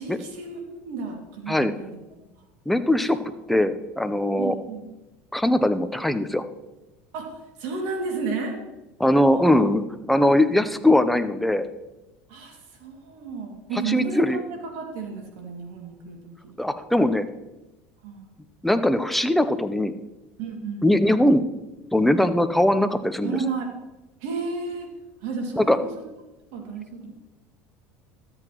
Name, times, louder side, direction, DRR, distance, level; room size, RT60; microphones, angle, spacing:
voice 1, 0.0-1.9 4.4-4.8 7.1-8.6 9.3-9.6 12.3-16.5 18.0-18.3 20.4-20.9 23.2-23.7 24.2-24.9 25.2-25.9 26.5-27.1, right 4 dB, 75° right, 2 dB, 2.3 m, -32 dB
voice 2, 2.7-3.2 3.5-4.5 5.3-6.4 9.0-9.8 10.1-11.6 13.9-14.4 16.6-17.2 18.6-19.9 20.8-21.4 21.9-23.4 25.6-25.8, left 1 dB, ahead, 10 dB, 0.6 m, -20 dB
13.0 x 8.0 x 3.0 m, 1.0 s
supercardioid pair, 100°, 6 cm